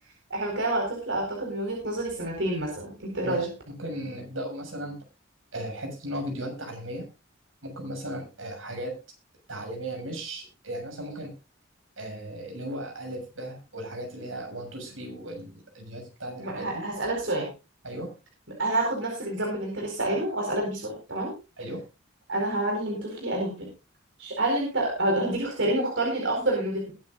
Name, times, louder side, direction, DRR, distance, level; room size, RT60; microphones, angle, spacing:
voice 1, 0.3-3.5 16.4-17.5 18.6-21.3 22.3-23.7 24.2-26.9, right 1 dB, 70° right, 0 dB, 4.6 m, -28 dB
voice 2, 3.2-5.0 5.5-7.1 7.6-9.0 9.5-11.3 12.0-16.8 17.8-18.1 21.6-21.8, right 1 dB, 85° right, 3 dB, 6.7 m, -36 dB
21.5 x 9.7 x 2.5 m, 0.29 s
head